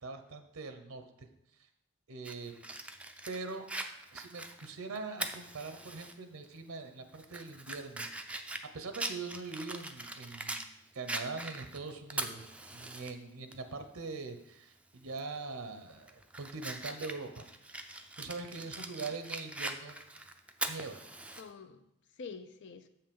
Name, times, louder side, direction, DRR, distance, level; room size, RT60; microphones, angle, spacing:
voice 1, 0.0-1.3 2.1-2.6 3.3-3.7 4.1-8.1 8.7-10.6 10.9-12.4 12.7-17.8 18.2-20.0 20.7-21.0, right 4 dB, 75° right, 7 dB, 0.8 m, -42 dB
Fire, 2.2-6.1 6.5-6.6 7.1-10.7 11.1-13.1 13.5-13.6 15.1-15.4 15.8-21.4, right 2 dB, 5° right, 0.4 m, -41 dB
Whoosh swoosh swish, 13.4-17.1, left 1 dB, 85° left, 1.6 m, -66 dB
voice 2, 21.4-22.9, left 5 dB, 55° left, 9 dB, 0.5 m, -48 dB
7.5 x 5.8 x 5.2 m, 0.82 s
head